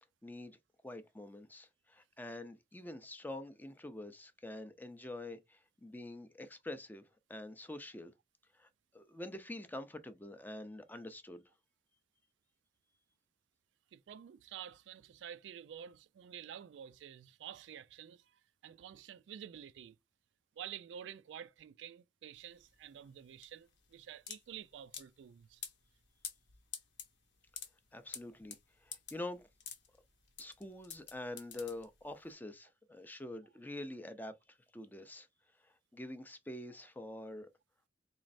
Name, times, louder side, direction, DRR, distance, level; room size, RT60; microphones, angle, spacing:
voice 1, 0.2-0.6 0.8-8.1 8.6-11.4 27.9-28.6 28.8-29.5 30.4-35.3 35.9-37.5, left 1 dB, 10° left, 0.5 m, -46 dB
voice 2, 13.9-20.0 20.6-25.6, right 9 dB, 75° right, 0.3 m, -50 dB
sound 1, 22.3-32.3, left 8 dB, 75° left, 0.9 m, -49 dB
4.0 x 3.1 x 2.5 m
head